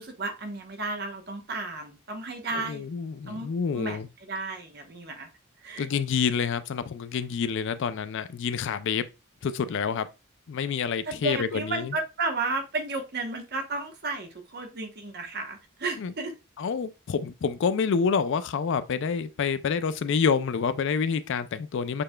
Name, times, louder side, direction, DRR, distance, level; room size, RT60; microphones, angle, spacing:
voice 1, 0.0-2.9 3.3-3.5 3.7-5.3 5.6-5.9 11.1-16.3, right 3 dB, 50° right, 1.0 m, -33 dB
voice 2, 2.5-4.1 5.8-9.1 9.4-10.1 10.5-11.9 16.0-16.1 16.6-22.0, left 6 dB, 60° left, 0.4 m, -28 dB
6.8 x 3.2 x 2.2 m
head